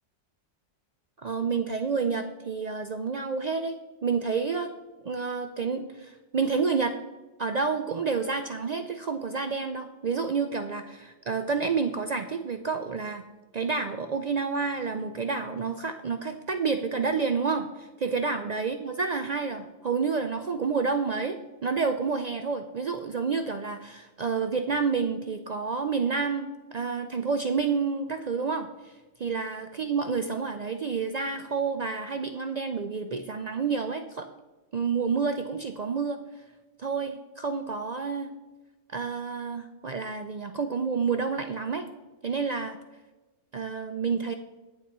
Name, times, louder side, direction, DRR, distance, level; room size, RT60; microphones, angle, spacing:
voice 1, 1.2-3.8 4.0-4.7 5.0-6.9 7.4-13.2 13.5-28.9 29.2-34.3 34.7-36.2 36.8-38.3 38.9-41.9 42.2-42.7 43.5-44.3, right 5 dB, 55° right, 7 dB, 0.4 m, -29 dB
21.0 x 7.1 x 3.1 m, 1.2 s
omnidirectional pair, 1.3 m